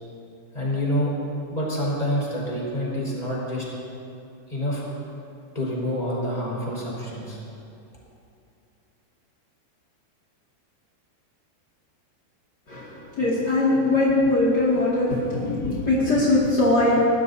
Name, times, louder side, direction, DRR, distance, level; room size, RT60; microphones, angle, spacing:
voice 1, 0.5-1.1 1.5-3.6 4.5-4.8 5.5-7.4, equal, 10° left, -5 dB, 4.2 m, -27 dB
voice 2, 12.7-17.0, left 2 dB, 40° left, -8 dB, 1.6 m, -21 dB
23.0 x 19.5 x 2.8 m, 2.7 s
omnidirectional pair, 5.5 m